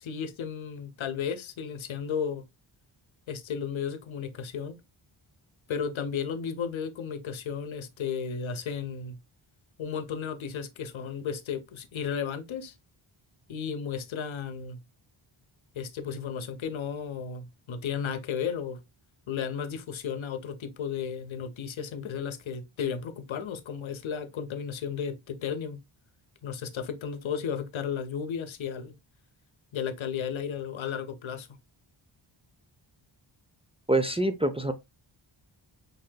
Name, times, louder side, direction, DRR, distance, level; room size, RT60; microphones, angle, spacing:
voice 1, 0.0-2.4 3.3-4.8 5.7-9.2 9.8-12.7 13.5-14.8 15.7-18.8 19.3-25.8 26.4-28.9 29.7-31.5, left 7 dB, 70° left, 0.8 m, -34 dB
voice 2, 33.9-34.7, right 1 dB, 15° right, 0.4 m, -25 dB
5.4 x 3.7 x 2.2 m
wide cardioid pair, 90°, 48 cm